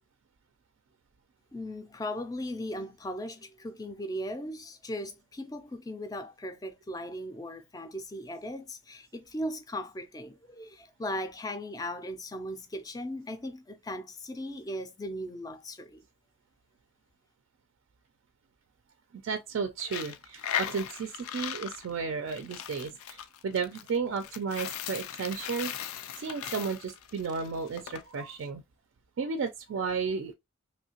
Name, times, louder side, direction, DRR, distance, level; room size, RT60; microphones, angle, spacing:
voice 1, 1.5-16.0, left 1 dB, 15° left, 0.3 m, -38 dB
voice 2, 19.2-25.7 26.2-28.6 29.2-30.3, right 5 dB, 65° right, 0.3 m, -33 dB
Coin (dropping), 19.8-28.0, left 9 dB, 85° left, 0.4 m, -38 dB
3.1 x 2.7 x 2.8 m
head